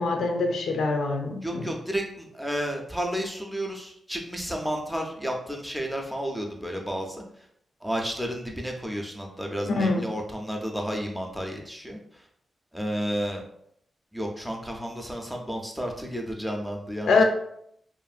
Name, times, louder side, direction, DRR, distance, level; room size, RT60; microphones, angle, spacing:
voice 1, 0.0-1.7 9.8-10.1 17.1-17.2, left 3 dB, 85° left, 3 dB, 0.4 m, -24 dB
voice 2, 1.4-7.2 7.8-12.3 12.7-13.4 14.1-17.2, equal, 5° right, 1 dB, 0.4 m, -32 dB
2.8 x 2.5 x 2.4 m, 0.71 s
wide cardioid pair, 130°, 0 cm